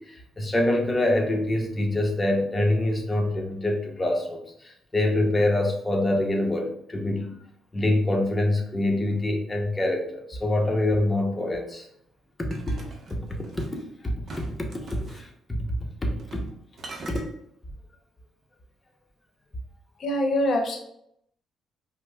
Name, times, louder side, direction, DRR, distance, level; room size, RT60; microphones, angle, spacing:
voice 1, 0.0-7.4 7.7-11.9 12.4-12.7 13.1-13.2 13.5-15.7 16.0-16.5 17.1-17.2, left 1 dB, 20° left, 1 dB, 0.7 m, -25 dB
sound 1, 12.5-13.8 14.3-15.3 16.2-16.5 16.8-17.3, right 2 dB, 50° right, 0.7 m, -42 dB
voice 2, 20.0-20.8, left 1 dB, 55° left, 3 dB, 0.7 m, -24 dB
4.9 x 2.0 x 2.3 m, 0.73 s
cardioid pair, 90°, 0 cm